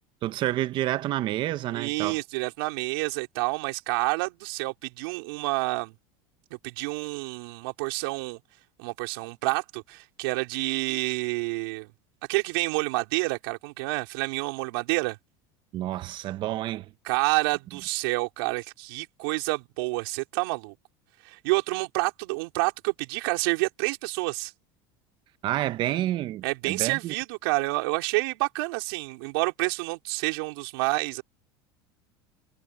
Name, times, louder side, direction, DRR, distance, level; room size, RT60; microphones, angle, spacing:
voice 1, 0.2-2.2 15.7-16.9 25.4-27.1, right 14 dB, 40° right, 0.8 m, -29 dB
voice 2, 1.7-5.9 6.5-8.4 8.8-11.9 12.3-15.2 17.0-20.7 21.2-24.5 26.4-31.2, right 26 dB, 80° right, 4.5 m, -28 dB
supercardioid pair, 145°, 12 cm